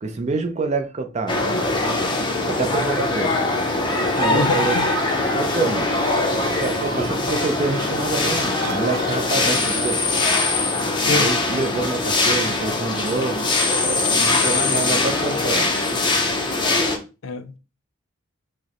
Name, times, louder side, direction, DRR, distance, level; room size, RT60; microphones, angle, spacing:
voice 1, 0.0-2.1 2.5-3.3 4.0-4.8 5.3-5.9 6.5-10.0 11.1-13.5 14.1-15.7, right 3 dB, 35° right, 0.4 m, -27 dB
sound 1, 1.3-17.0, left 2 dB, 20° left, 0.6 m, -22 dB
sound 2, 3.9-9.5, right 4 dB, 85° right, 0.7 m, -36 dB
voice 2, 4.3-4.8 11.1-11.3 14.2-14.8 17.2-17.6, left 4 dB, 70° left, 0.4 m, -26 dB
4.8 x 2.0 x 2.9 m
head